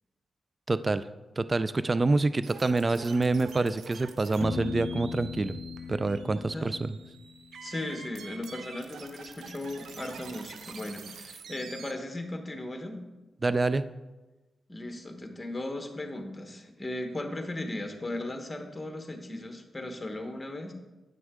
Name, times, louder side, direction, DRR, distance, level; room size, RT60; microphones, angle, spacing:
voice 1, 0.7-1.0 1.4-5.5 5.9-7.0 13.4-13.8, right 3 dB, 30° right, 14 dB, 0.3 m, -26 dB
sound 1, 2.4-11.9, right 5 dB, 80° right, 0.7 m, -47 dB
Piano, 4.4-8.1, left 6 dB, 60° left, 0.6 m, -39 dB
voice 2, 7.6-13.0 14.7-20.7, left 1 dB, 20° left, 5 dB, 1.2 m, -37 dB
9.0 x 6.1 x 3.7 m, 1.1 s
cardioid pair, 70°, 0 cm